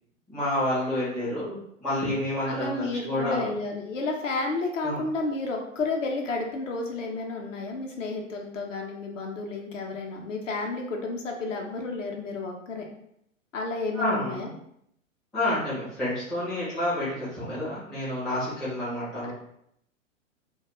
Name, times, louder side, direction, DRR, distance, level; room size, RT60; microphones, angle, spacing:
voice 1, 0.3-3.5 4.8-5.0 13.9-14.4 15.3-19.3, left 1 dB, ahead, -11 dB, 0.4 m, -29 dB
voice 2, 2.4-12.9 13.5-14.5 19.2-19.3, left 3 dB, 70° left, 1 dB, 0.7 m, -31 dB
2.3 x 2.2 x 2.9 m, 0.73 s
figure-of-eight pair, 105°, 40 cm